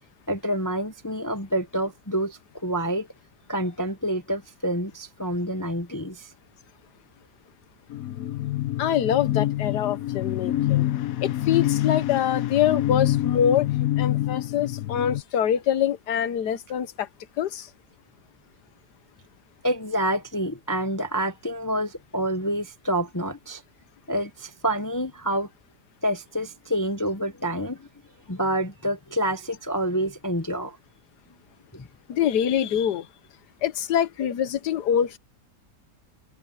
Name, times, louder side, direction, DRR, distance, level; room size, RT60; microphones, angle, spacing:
voice 1, 0.3-3.1 3.5-6.3 19.6-23.6 24.1-25.5 26.0-27.9 28.3-30.8 31.7-31.9, right 1 dB, 20° left, 0.6 m, -28 dB
sound 1, 7.9-15.2, left 14 dB, 65° left, 1.1 m, -26 dB
voice 2, 8.8-10.9 11.2-13.7 14.0-17.1 17.4-17.7 32.1-33.1 33.6-35.2, left 9 dB, 80° left, 1.5 m, -24 dB
omnidirectional pair, 1.7 m